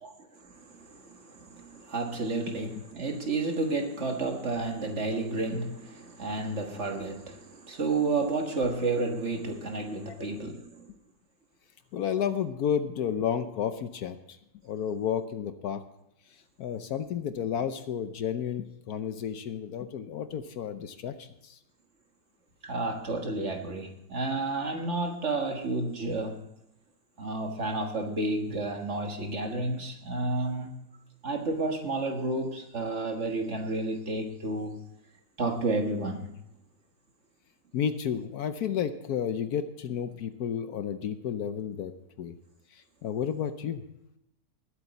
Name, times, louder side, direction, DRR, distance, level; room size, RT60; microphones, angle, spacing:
voice 1, 0.0-10.9 22.6-26.4 27.2-30.7 31.2-34.8 35.4-36.3, right 2 dB, 45° right, 1.7 m, -31 dB
voice 2, 11.9-14.4 14.6-15.8 16.6-21.6 37.7-41.9 42.2-42.4 42.7-43.8, left 8 dB, 65° left, 1.2 m, -31 dB
20.0 x 8.1 x 4.1 m
omnidirectional pair, 1.8 m